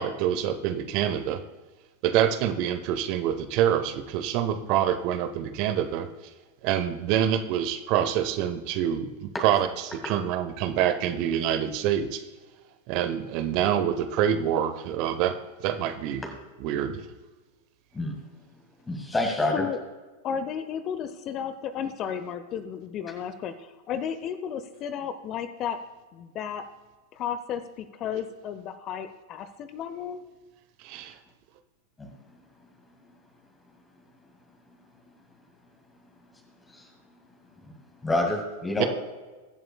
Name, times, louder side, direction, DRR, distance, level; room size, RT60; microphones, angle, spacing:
voice 1, 0.0-1.4 2.0-6.1 6.6-12.2 12.9-15.3 15.6-16.2 16.6-17.0 30.8-31.1 38.8-38.9, right 10 dB, 45° right, 10 dB, 0.9 m, -26 dB
voice 2, 18.9-19.6 32.0-32.1 36.7-36.9 38.0-38.9, left 2 dB, 10° left, 1 dB, 1.9 m, -27 dB
voice 3, 20.2-25.8 26.1-26.6 27.1-30.2, left 8 dB, 35° left, 10 dB, 0.7 m, -33 dB
22.5 x 7.8 x 2.3 m, 1.2 s
figure-of-eight pair, 90°, 0 cm